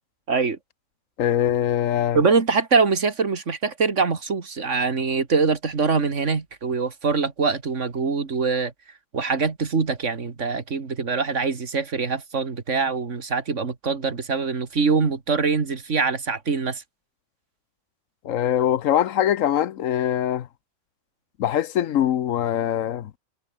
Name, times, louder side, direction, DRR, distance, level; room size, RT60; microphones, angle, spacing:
voice 1, 0.3-0.6 2.1-8.7 9.1-16.8, right 4 dB, 65° right, 2.4 m, -23 dB
voice 2, 1.2-2.2 18.2-20.5 21.4-23.1, left 11 dB, 90° left, 1.2 m, -22 dB
omnidirectional pair, 1.3 m